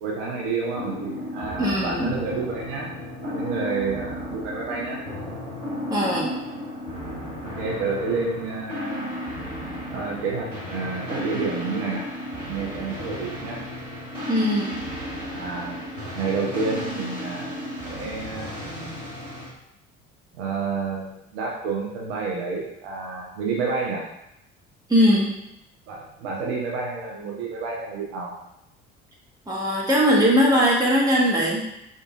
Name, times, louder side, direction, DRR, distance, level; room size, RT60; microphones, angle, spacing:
voice 1, 0.0-2.9 3.2-5.0 7.4-9.2 9.9-12.0 12.3-13.6 15.3-15.8 16.1-17.6 17.8-19.0 20.3-24.0 25.9-28.3, right 4 dB, 60° right, -3 dB, 1.0 m, -29 dB
sound 1, 0.7-19.5, equal, 90° left, 1.2 m, -34 dB
voice 2, 1.6-2.1 5.9-6.4 14.3-14.7 24.9-25.3 29.5-31.7, equal, 10° right, -5 dB, 1.6 m, -20 dB
5.0 x 4.0 x 2.5 m, 0.83 s
figure-of-eight pair, 55°, 37 cm